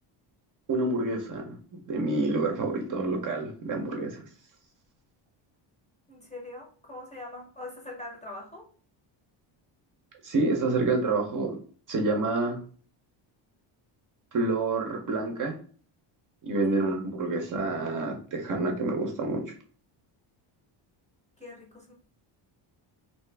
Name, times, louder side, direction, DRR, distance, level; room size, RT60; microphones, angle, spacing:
voice 1, 0.7-4.2 10.2-11.6 11.9-12.6 14.3-15.6 16.4-19.5, right 2 dB, 40° right, 2 dB, 0.6 m, -28 dB
voice 2, 6.1-8.7 16.5-16.8 21.4-21.9, left 2 dB, 15° left, -1 dB, 0.7 m, -43 dB
2.7 x 2.4 x 3.2 m, 0.43 s
cardioid pair, 140°, 47 cm